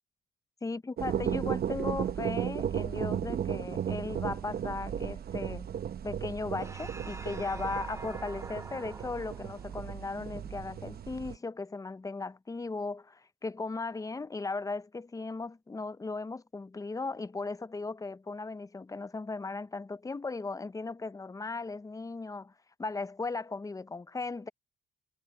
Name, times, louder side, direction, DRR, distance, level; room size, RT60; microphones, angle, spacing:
voice 1, 0.6-5.7 6.0-22.5 22.8-24.5, left 3 dB, 15° left, 0.6 m, -37 dB
sound 1, 1.0-11.4, right 9 dB, 50° right, 0.8 m, -35 dB
sound 2, 6.6-11.4, right 3 dB, 15° right, 0.8 m, -47 dB
cardioid pair, 90°, 20 cm